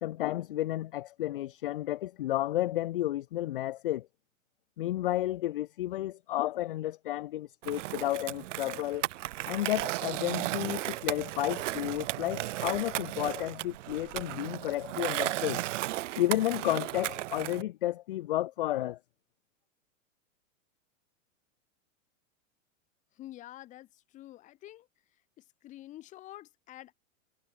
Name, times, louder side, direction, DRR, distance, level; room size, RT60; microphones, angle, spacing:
voice 1, 0.0-4.1 4.8-9.1 9.5-15.6 16.2-19.0, left 14 dB, 45° left, 0.4 m, -32 dB
Skateboard, 7.6-17.6, right 16 dB, 65° right, 0.5 m, -35 dB
voice 2, 23.1-24.9 25.4-26.9, left 14 dB, 20° left, 1.9 m, -48 dB
supercardioid pair, 175°, 41 cm